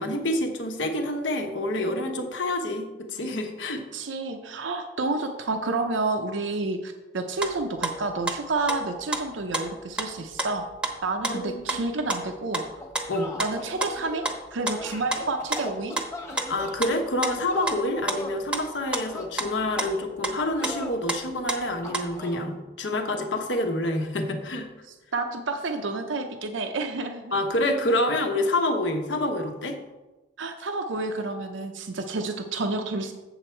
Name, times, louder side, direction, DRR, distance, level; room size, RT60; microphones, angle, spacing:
voice 1, 0.0-3.8 11.3-11.8 13.1-13.3 16.5-24.7 27.3-29.8, left 1 dB, 70° left, 4 dB, 1.1 m, -27 dB
voice 2, 3.9-10.7 11.0-12.6 13.4-14.2 14.5-15.9 25.1-27.4 30.4-33.1, right 3 dB, 85° right, 5 dB, 0.7 m, -29 dB
sound 1, 7.4-12.7 12.9-16.1 16.4-17.0 17.2-22.1, right 2 dB, 5° right, 0.8 m, -31 dB
sound 2, 12.8-14.4 14.8-16.8 17.5-18.4 19.0-19.9 20.6-21.0 21.8-22.4, left 1 dB, 15° left, 1.2 m, -39 dB
8.0 x 7.2 x 4.5 m, 1.1 s
head